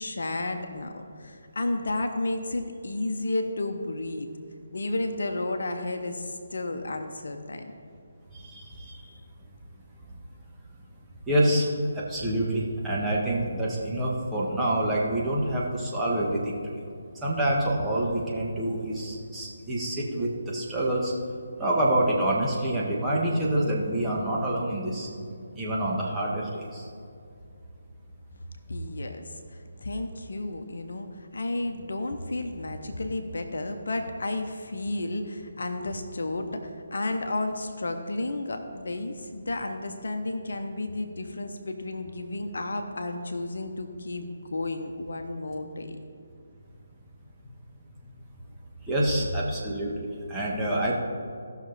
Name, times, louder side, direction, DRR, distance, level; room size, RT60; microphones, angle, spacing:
voice 1, 0.0-4.3 4.7-7.7 8.7-9.2 28.7-46.0, left 2 dB, 65° left, 6 dB, 0.9 m, -32 dB
voice 2, 8.4-9.0 11.3-16.7 17.2-21.1 21.6-25.1 25.5-26.9 48.8-50.9, right 1 dB, 10° right, -6 dB, 1.7 m, -27 dB
16.5 x 6.2 x 4.2 m, 2.4 s
figure-of-eight pair, 145°, 0 cm